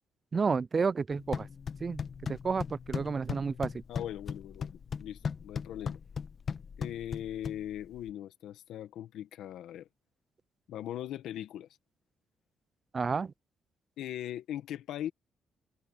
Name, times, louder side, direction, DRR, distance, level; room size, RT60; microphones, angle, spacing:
voice 1, 0.3-1.5 1.8-3.8 12.9-13.3, right 5 dB, 35° right, 0.5 m, -31 dB
sound 1, 1.1-8.1, left 6 dB, 50° left, 1.4 m, -38 dB
voice 2, 3.9-6.0 6.8-9.9 10.7-11.7 14.0-15.1, left 11 dB, 80° left, 1.8 m, -40 dB
open air
cardioid pair, 90°, 0 cm